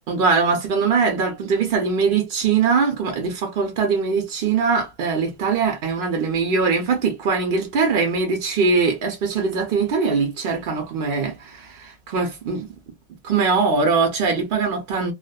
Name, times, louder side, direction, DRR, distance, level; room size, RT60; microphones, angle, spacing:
voice 1, 0.1-12.7 13.2-15.1, right 5 dB, 55° right, 0.6 m, -21 dB
2.4 x 2.3 x 2.3 m
omnidirectional pair, 1.5 m